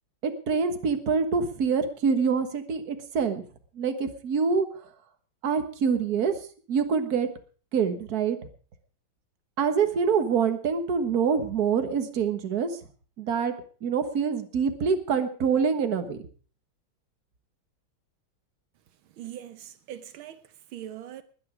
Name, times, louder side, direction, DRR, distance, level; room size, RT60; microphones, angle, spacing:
voice 1, 0.2-3.4 3.8-4.7 5.4-6.4 6.7-7.3 7.7-8.4 9.6-12.8 13.2-13.5 13.8-16.2, right 6 dB, 50° right, 1.8 m, -25 dB
voice 2, 19.2-21.2, right 11 dB, 85° right, 1.7 m, -41 dB
20.5 x 9.6 x 5.0 m
omnidirectional pair, 2.2 m